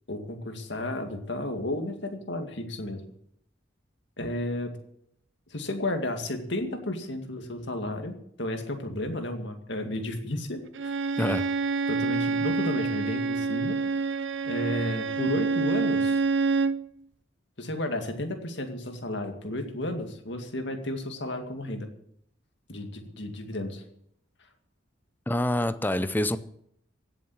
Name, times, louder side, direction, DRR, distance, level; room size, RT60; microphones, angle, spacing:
voice 1, 0.1-3.0 4.2-4.8 5.5-11.0 11.9-13.8 14.4-16.2 17.6-21.9 22.7-23.8, left 1 dB, 65° left, 2.2 m, -33 dB
Bowed string instrument, 10.7-16.8, right 4 dB, 70° right, 0.6 m, -27 dB
voice 2, 11.2-11.5 25.3-26.4, left 1 dB, 10° left, 0.5 m, -26 dB
16.5 x 7.2 x 8.6 m
head